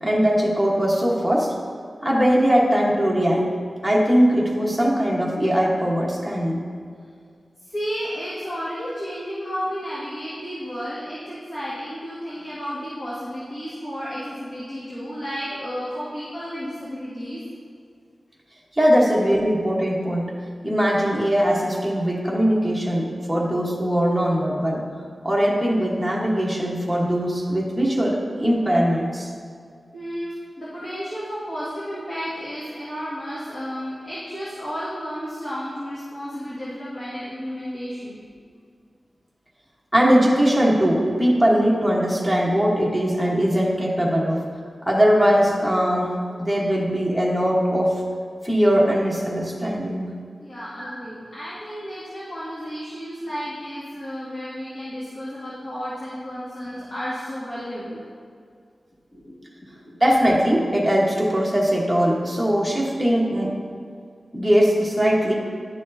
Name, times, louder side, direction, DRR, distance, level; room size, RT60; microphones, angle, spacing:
voice 1, 0.0-1.5 2.0-3.5 3.8-6.6 18.8-20.3 20.6-24.8 25.2-29.3 39.9-44.4 44.8-48.0 48.4-50.1 50.8-50.9 60.0-63.5 64.3-65.3, equal, 5° right, -4 dB, 1.3 m, -20 dB
voice 2, 7.6-17.4 29.9-30.3 30.6-38.2 50.4-58.0 59.1-59.3 59.7-60.0, equal, 50° left, -9 dB, 1.8 m, -32 dB
10.5 x 6.3 x 2.7 m, 2.2 s
wide cardioid pair, 120°, 0 cm